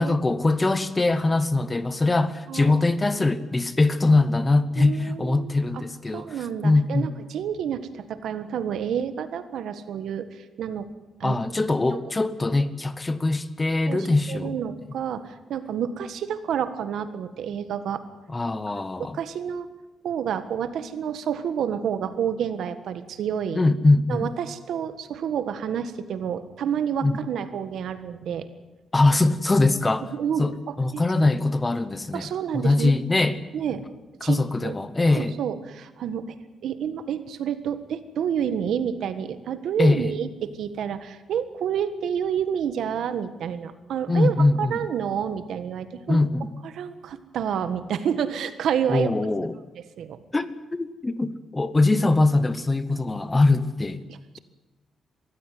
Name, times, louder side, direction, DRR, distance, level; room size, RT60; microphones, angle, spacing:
voice 1, 0.0-6.4 6.6-7.1 11.2-14.6 18.3-19.2 23.5-24.3 27.0-27.1 28.9-30.1 30.4-30.5 30.8-33.4 34.2-35.4 39.8-40.1 44.1-44.7 46.1-46.5 48.9-49.5 50.3-54.0, left 2 dB, 15° left, 0.9 m, -22 dB
voice 2, 2.5-2.8 4.8-5.8 6.1-10.9 11.2-11.4 11.9-12.1 13.9-18.1 19.0-19.7 20.0-23.6 24.1-28.5 30.1-31.3 32.1-32.9 33.5-33.8 34.2-34.7 35.1-46.2 46.6-49.1 50.0-50.2 54.1-54.4, right 8 dB, 75° right, 1.6 m, -29 dB
22.5 x 15.0 x 9.6 m
wide cardioid pair, 170°, 0 cm